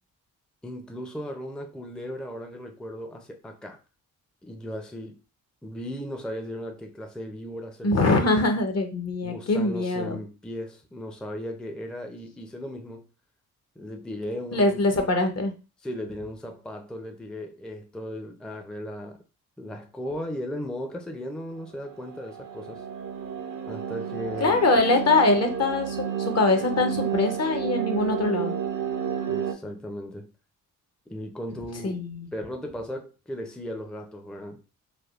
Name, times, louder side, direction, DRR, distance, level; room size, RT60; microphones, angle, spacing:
voice 1, 0.6-3.8 4.4-5.2 5.6-8.2 9.2-13.0 13.8-14.8 15.8-19.2 19.6-22.8 23.7-24.6 29.3-30.3 31.1-32.0 32.3-34.6, equal, ahead, 0.5 m, -36 dB
voice 2, 7.8-10.2 14.5-15.5 24.4-26.0 26.3-28.5 31.8-32.3, left 3 dB, 45° left, 0.8 m, -23 dB
sound 1, 21.8-29.5, right 8 dB, 65° right, 0.8 m, -31 dB
3.4 x 2.2 x 2.4 m
supercardioid pair, 55°, 36 cm